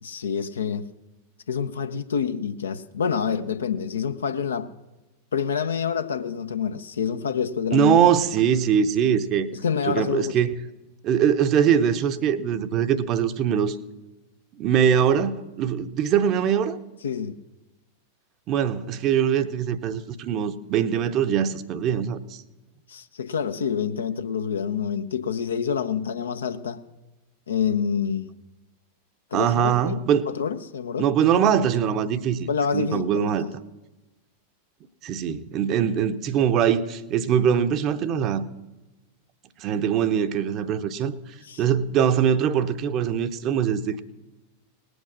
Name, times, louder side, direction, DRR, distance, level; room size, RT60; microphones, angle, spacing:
voice 1, 0.0-0.9 1.5-4.7 5.3-8.0 9.5-10.4 17.0-17.4 22.9-26.8 27.5-28.3 29.3-31.1 32.5-33.5 41.4-41.6, left 7 dB, 70° left, 0.7 m, -27 dB
voice 2, 7.7-9.5 9.8-10.5 11.0-13.8 14.6-16.8 18.5-22.4 29.3-30.3 31.0-33.5 35.0-38.4 39.6-41.1 41.6-44.0, right 8 dB, 35° right, 0.8 m, -22 dB
19.0 x 8.1 x 6.1 m
figure-of-eight pair, 90°, 0 cm